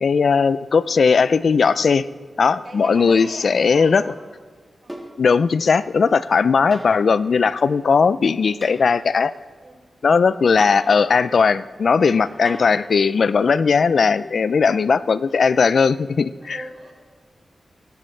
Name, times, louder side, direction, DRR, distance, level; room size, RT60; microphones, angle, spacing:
voice 1, 0.0-2.1 2.4-4.1 5.2-9.3 10.0-16.6, left 5 dB, 70° left, 16 dB, 0.4 m, -18 dB
voice 2, 2.6-4.2 4.8-4.9 9.6-9.8 12.0-12.4 16.4-16.9, right 2 dB, 50° right, 0 dB, 4.7 m, -40 dB
sound 1, 3.1-3.4 4.9-5.2 6.7-7.0 8.6-8.8 10.6-10.9 12.4-12.8 14.5-14.6, equal, 10° right, 2.9 m, -37 dB
23.5 x 11.5 x 3.3 m, 1.5 s
cardioid pair, 55°, 0 cm